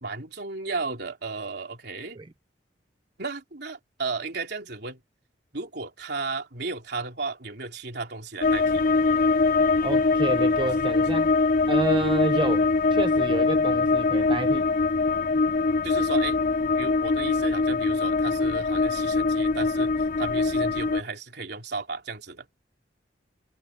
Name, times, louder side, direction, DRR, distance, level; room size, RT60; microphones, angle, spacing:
voice 1, 0.0-2.2 3.2-5.0 5.5-8.8 10.7-11.0 12.0-12.2 15.8-16.4 16.8-22.5, right 4 dB, 65° right, 3.4 m, -34 dB
sound 1, 8.4-21.0, left 3 dB, 55° left, 0.7 m, -23 dB
voice 2, 9.8-11.3 11.7-14.7, right 2 dB, 25° right, 0.6 m, -29 dB
head